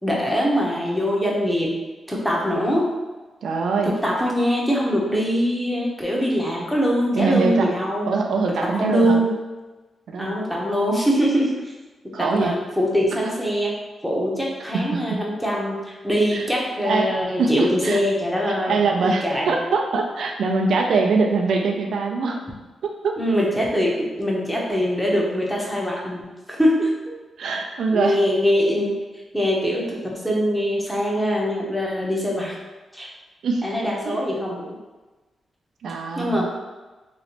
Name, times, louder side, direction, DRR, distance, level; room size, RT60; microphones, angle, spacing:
voice 1, 0.0-1.8 2.1-2.9 3.8-8.1 8.5-9.4 10.2-11.7 12.0-13.7 14.0-19.5 23.2-26.9 27.9-28.9 29.3-32.5 32.9-33.1 33.6-34.7 36.2-36.5, equal, 5° left, -3 dB, 0.8 m, -23 dB
voice 2, 3.4-4.0 7.1-7.7 8.1-9.2 10.1-10.3 12.1-12.5 14.7-15.2 16.3-16.5 16.8-17.1 17.4-18.0 18.5-22.4 22.8-23.2 27.4-28.2 33.4-33.7 34.1-34.2 35.8-36.4, right 4 dB, 80° right, 2 dB, 0.3 m, -23 dB
3.1 x 2.9 x 2.8 m, 1.2 s
cardioid pair, 95°, 0 cm